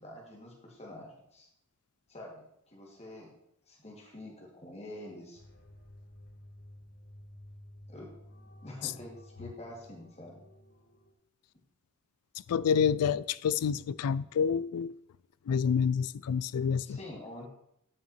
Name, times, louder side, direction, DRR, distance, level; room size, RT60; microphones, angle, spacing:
voice 1, 0.0-1.5 2.1-3.3 3.7-5.4 7.9-8.1 8.6-10.4 16.8-17.5, left 1 dB, 30° left, 2.1 m, -46 dB
sound 1, 5.3-11.1, left 1 dB, 50° left, 1.3 m, -53 dB
voice 2, 12.5-14.9 15.5-17.0, left 7 dB, 85° left, 0.3 m, -28 dB
9.5 x 5.7 x 4.2 m
head